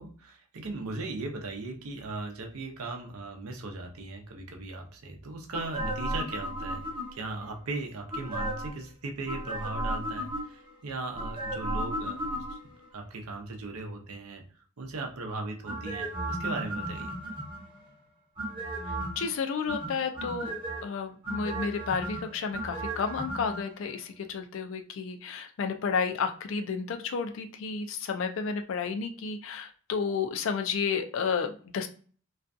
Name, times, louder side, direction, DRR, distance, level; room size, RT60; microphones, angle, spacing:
voice 1, 0.0-12.6 12.9-14.4 14.8-17.1, right 3 dB, 80° right, 3 dB, 0.6 m, -38 dB
sound 1, 5.5-7.3 8.1-8.8 9.2-10.7 11.1-12.8 15.6-17.8 18.4-19.3 19.7-20.8 21.2-23.6 23.9-24.0, right 1 dB, 25° right, 0.8 m, -34 dB
voice 2, 19.2-20.5 20.8-31.9, left 5 dB, 60° left, 6 dB, 0.3 m, -31 dB
2.4 x 2.2 x 2.5 m, 0.42 s
head